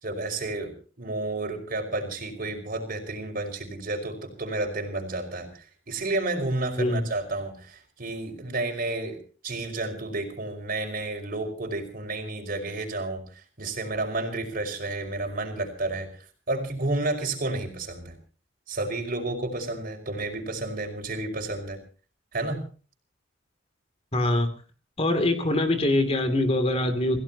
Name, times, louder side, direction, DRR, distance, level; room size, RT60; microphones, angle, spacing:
voice 1, 0.0-9.2 9.4-13.2 13.6-16.1 16.5-18.1 18.7-21.8 22.3-22.7, right 2 dB, 45° right, 4 dB, 5.4 m, -31 dB
voice 2, 6.8-7.1 24.1-24.5 25.0-27.2, left 1 dB, 30° left, 8 dB, 2.7 m, -23 dB
28.0 x 17.0 x 2.9 m, 0.37 s
head